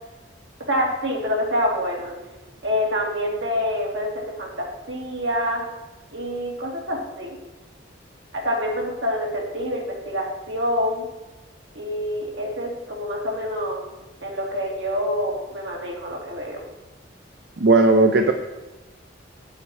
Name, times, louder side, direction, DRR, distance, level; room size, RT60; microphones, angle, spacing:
voice 1, 0.7-2.2 2.6-5.6 6.1-7.4 8.3-11.1 11.7-13.8 14.2-16.6, equal, 80° right, -2 dB, 2.6 m, -26 dB
voice 2, 17.6-18.3, right 2 dB, 60° right, 5 dB, 0.6 m, -16 dB
8.4 x 8.1 x 4.7 m, 1.1 s
head